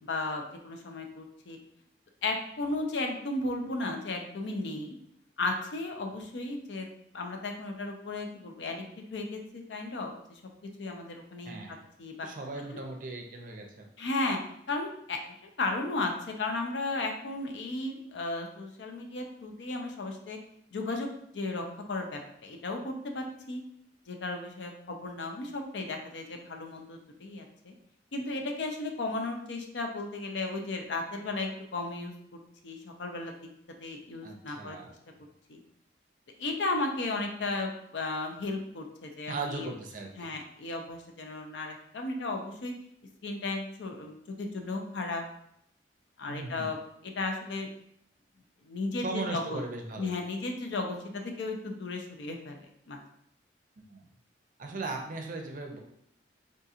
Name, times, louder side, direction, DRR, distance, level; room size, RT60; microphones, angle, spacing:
voice 1, 0.0-1.6 2.2-4.9 5.4-10.4 10.8-11.6 12.0-12.3 12.7-12.8 14.0-14.4 14.7-16.1 16.4-20.4 20.7-21.1 21.3-23.6 24.1-27.7 28.1-33.4 33.8-34.8 35.5-35.6 36.4-39.7 40.2-42.7 43.2-45.2 46.2-46.8 47.0-47.7 48.6-49.6 50.0-52.6 52.9-53.0, left 2 dB, 75° left, 3 dB, 0.5 m, -35 dB
voice 2, 11.4-11.9 12.2-13.9 34.2-34.9 39.3-40.3 46.3-46.7 49.0-50.1 53.8-54.0 54.6-55.8, right 3 dB, 45° right, 3 dB, 0.5 m, -38 dB
3.7 x 2.8 x 2.4 m, 0.73 s
head